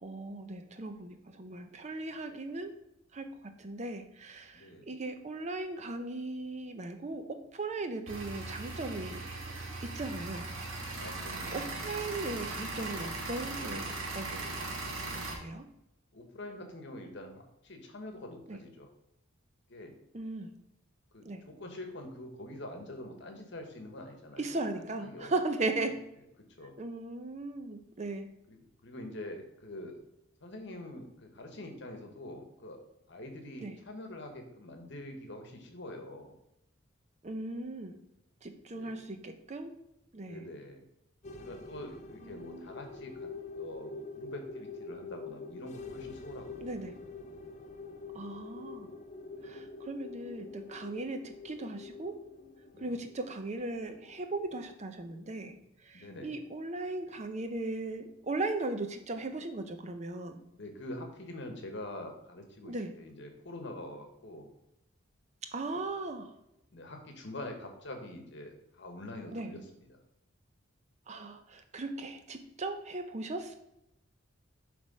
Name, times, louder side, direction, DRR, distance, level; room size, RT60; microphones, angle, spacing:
voice 1, 0.0-2.7 3.1-3.3 3.6-9.2 9.8-10.5 11.5-14.5 15.0-15.6 18.5-18.6 20.1-20.5 21.3-21.4 24.4-25.9 26.8-28.3 33.6-33.7 37.2-38.0 38.4-39.7 40.1-40.4 42.2-42.7 46.6-46.9 48.1-48.9 49.4-52.1 52.8-55.6 55.8-60.4 62.6-62.9 65.5-66.3 69.3-69.5 71.1-73.5, right 2 dB, 35° right, 7 dB, 0.5 m, -37 dB
voice 2, 4.5-4.9 10.9-11.7 16.1-18.9 19.7-20.0 21.1-25.4 26.6-26.7 28.5-28.6 28.8-30.0 30.4-32.8 33.1-36.3 38.7-38.9 40.3-40.8 41.4-43.3 43.5-46.6 49.3-49.6 52.7-53.0 55.9-56.4 60.5-64.5 65.7-65.8 66.7-70.0, left 1 dB, 55° left, 4 dB, 1.2 m, -45 dB
sound 1, 8.1-15.3, right 3 dB, 80° right, 1.8 m, -39 dB
sound 2, 41.2-54.8, left 3 dB, 35° left, 0.5 m, -46 dB
7.2 x 3.4 x 5.3 m, 0.83 s
head